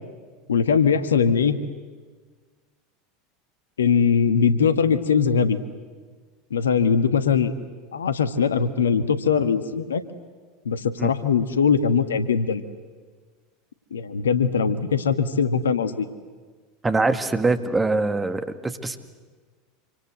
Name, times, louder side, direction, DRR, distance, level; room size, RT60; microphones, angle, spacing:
voice 1, 0.5-1.6 3.8-5.6 6.5-7.5 7.9-10.0 10.6-12.6 13.9-16.1, left 6 dB, 75° left, 11 dB, 1.5 m, -21 dB
voice 2, 16.8-19.0, right 3 dB, 15° right, 9 dB, 2.2 m, -23 dB
27.0 x 25.5 x 8.0 m, 1.5 s
figure-of-eight pair, 80°, 0 cm